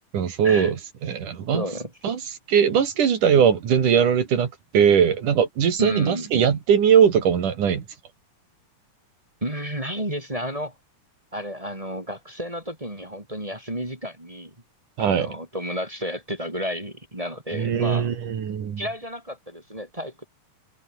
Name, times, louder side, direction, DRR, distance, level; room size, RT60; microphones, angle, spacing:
voice 1, 0.1-1.6 2.0-2.2 2.5-7.9 15.0-15.3 17.5-18.8, right 7 dB, 65° right, 4.0 m, -20 dB
voice 2, 1.5-2.1 5.8-6.3 9.4-10.7 11.3-14.5 15.0-18.1 18.8-20.3, equal, 10° right, 2.5 m, -31 dB
omnidirectional pair, 3.9 m